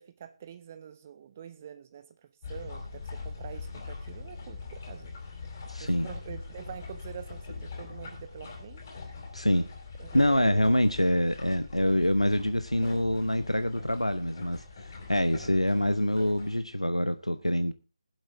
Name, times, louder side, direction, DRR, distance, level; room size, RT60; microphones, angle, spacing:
voice 1, 0.0-2.1 2.5-5.2 5.8-8.8 10.0-10.8, right 9 dB, 25° right, 1.0 m, -45 dB
sound 1, 2.4-16.6, left 4 dB, 25° left, 4.4 m, -42 dB
voice 2, 5.7-6.1 9.3-9.7 10.1-17.7, left 1 dB, 85° left, 0.9 m, -26 dB
21.0 x 7.8 x 3.5 m
figure-of-eight pair, 155°, 3 cm